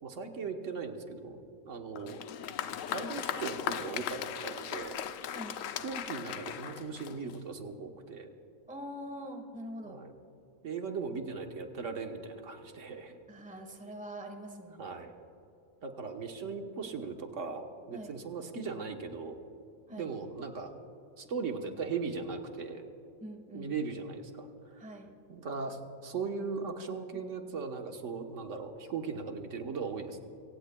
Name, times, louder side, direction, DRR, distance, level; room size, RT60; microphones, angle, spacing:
voice 1, 0.0-2.2 2.9-5.0 5.8-8.3 9.8-10.1 10.6-13.2 14.8-15.1 15.8-19.4 19.9-20.7 21.2-22.8 23.5-24.5 24.7-24.9 25.3-30.2, right 5 dB, 60° right, 4 dB, 1.4 m, -38 dB
Applause, 2.0-7.5, left 9 dB, 70° left, 0.9 m, -38 dB
voice 2, 8.7-10.0 13.3-14.9 17.9-18.1 19.9-20.1 23.2-23.7 24.8-25.1, equal, 5° right, 4 dB, 1.1 m, -44 dB
25.0 x 17.0 x 2.3 m, 2.7 s
omnidirectional pair, 1.5 m